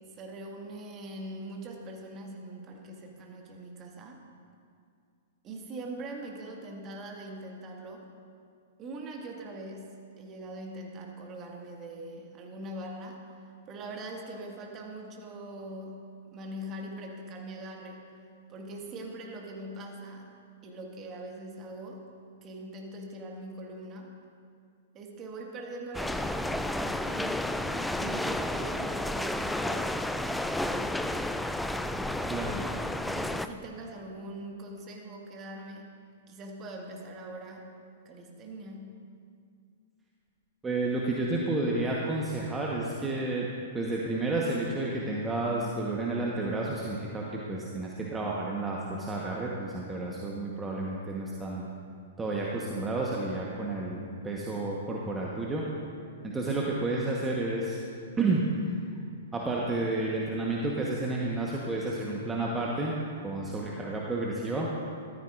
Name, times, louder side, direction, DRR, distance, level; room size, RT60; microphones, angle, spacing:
voice 1, 0.1-4.2 5.4-8.1 8.8-9.8 10.2-13.3 13.7-16.0 16.3-18.1 18.5-20.3 20.6-22.1 22.4-24.2 24.9-27.6 27.9-30.0 30.6-31.4 31.7-32.4 33.1-35.9 36.3-37.7 38.1-38.9, right 1 dB, 30° right, 0 dB, 1.7 m, -42 dB
sound 1, 25.9-33.5, left 1 dB, 5° left, 0.3 m, -31 dB
voice 2, 32.3-32.7 40.6-43.5 43.7-51.7 52.2-54.0 54.2-55.6 56.2-57.8 58.2-58.8 59.3-62.9 63.2-64.7, right 2 dB, 15° right, -3 dB, 1.1 m, -31 dB
13.5 x 13.5 x 2.5 m, 2.3 s
figure-of-eight pair, 110°, 0 cm